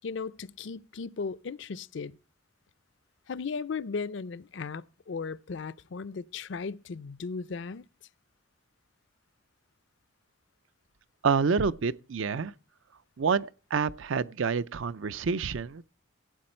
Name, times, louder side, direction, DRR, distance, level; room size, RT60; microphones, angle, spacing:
voice 1, 0.0-2.2 3.3-7.8, left 5 dB, 60° left, 0.5 m, -36 dB
voice 2, 11.2-12.5 13.2-15.8, right 5 dB, 70° right, 0.5 m, -28 dB
16.0 x 8.4 x 4.3 m
head